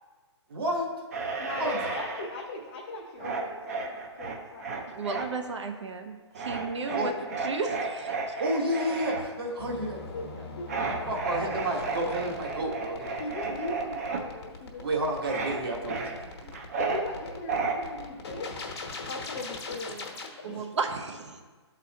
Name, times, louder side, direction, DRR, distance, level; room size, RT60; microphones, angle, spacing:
voice 1, 0.5-0.9 1.6-1.9 6.9-7.1 8.4-10.5 10.7-13.6 14.8-16.2, right 1 dB, 55° right, 0 dB, 1.2 m, -31 dB
sound 1, 1.1-2.3 3.2-5.3 6.3-9.2 10.7-14.2 15.2-15.6 15.9-17.0 17.5-17.8, right 4 dB, 35° right, 0.5 m, -33 dB
voice 2, 1.4-4.7 10.1-10.3 10.6-10.7 13.2-14.8 16.8-18.5 19.0-20.7, left 2 dB, 20° left, -2 dB, 0.4 m, -39 dB
voice 3, 4.9-7.1 7.4-8.4 16.4-16.5 20.4-21.4, right 4 dB, 80° right, 4 dB, 0.8 m, -34 dB
sound 2, 9.6-20.3, left 4 dB, 60° left, 1.1 m, -40 dB
12.0 x 4.1 x 2.8 m, 1.3 s
hypercardioid pair, 170°, 15 cm